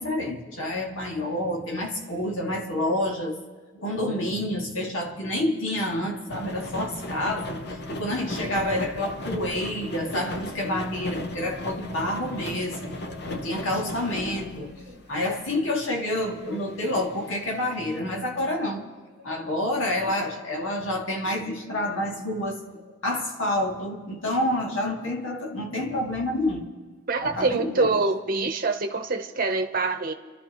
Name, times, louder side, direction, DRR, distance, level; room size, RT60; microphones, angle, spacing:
voice 1, 0.0-3.4 3.7-13.0 13.2-14.8 15.1-18.9 19.2-22.6 23.0-26.7 27.2-28.0, left 1 dB, 75° left, 2.2 m, -28 dB
sound 1, 6.3-15.5 15.9-18.0, left 1 dB, 50° left, 0.9 m, -36 dB
voice 2, 27.1-30.1, right 3 dB, 45° right, 0.9 m, -25 dB
30.0 x 13.0 x 3.1 m
head